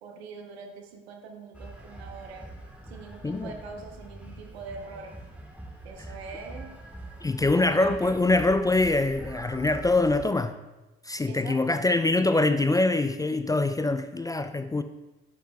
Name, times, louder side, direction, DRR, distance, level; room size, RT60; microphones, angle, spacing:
voice 1, 0.0-2.5 2.8-5.2 5.8-6.7 7.5-8.2 11.3-11.9, right 4 dB, 85° right, 4 dB, 0.6 m, -43 dB
sound 1, 1.5-10.3, right 1 dB, 5° right, 1.7 m, -44 dB
voice 2, 7.2-10.6 11.0-14.8, left 2 dB, 10° left, 10 dB, 0.3 m, -24 dB
9.8 x 5.0 x 2.3 m, 1.1 s
hypercardioid pair, 45°, 31 cm